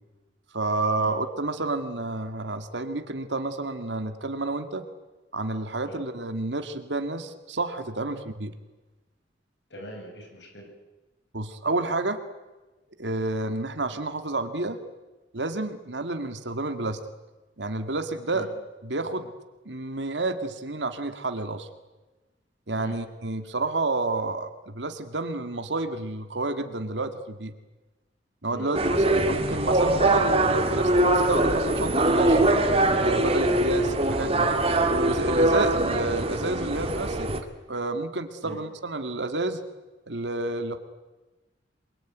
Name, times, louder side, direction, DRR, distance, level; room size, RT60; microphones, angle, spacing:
voice 1, 0.5-4.8 5.3-8.5 11.3-12.2 13.0-14.8 15.3-17.0 17.6-18.5 18.8-19.3 19.7-21.7 22.7-27.5 28.4-32.4 33.0-34.5 34.9-37.3 37.7-39.6 40.1-40.8, right 2 dB, 75° right, 8 dB, 2.0 m, -30 dB
voice 2, 9.7-10.7 18.3-18.5 22.8-23.0 28.5-28.7 33.5-33.6 38.4-38.6, equal, 70° left, 2 dB, 7.6 m, -41 dB
sound 1, 28.7-37.4, right 2 dB, 35° right, 2.3 m, -22 dB
28.0 x 22.5 x 9.4 m, 1.2 s
head